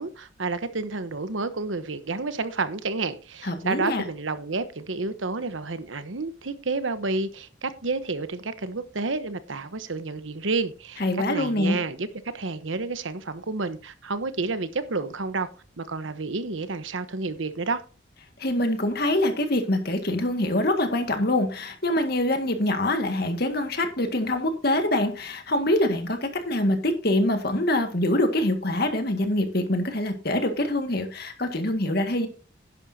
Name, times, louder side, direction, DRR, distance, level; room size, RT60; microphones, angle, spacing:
voice 1, 0.0-11.0 11.3-12.1 12.3-15.5 15.8-17.8, right 3 dB, 80° right, 1.0 m, -30 dB
voice 2, 3.4-4.0 11.0-11.8 18.4-32.3, left 1 dB, 55° left, 1.9 m, -24 dB
11.0 x 10.5 x 2.8 m
head